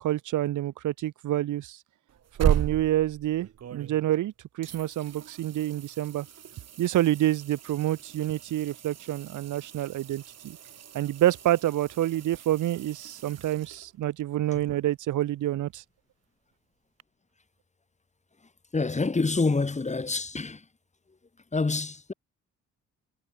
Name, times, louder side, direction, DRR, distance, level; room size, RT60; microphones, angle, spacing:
voice 1, 0.0-1.8 2.4-6.3 6.8-10.6 10.9-15.8, right 13 dB, 80° right, 2.2 m, -27 dB
sound 1, 2.1-4.3 4.6-14.2 17.0-17.1, right 9 dB, 55° right, 3.2 m, -36 dB
voice 2, 18.7-20.6 21.5-22.1, left 3 dB, 25° left, 3.9 m, -27 dB
cardioid pair, 90°, 30 cm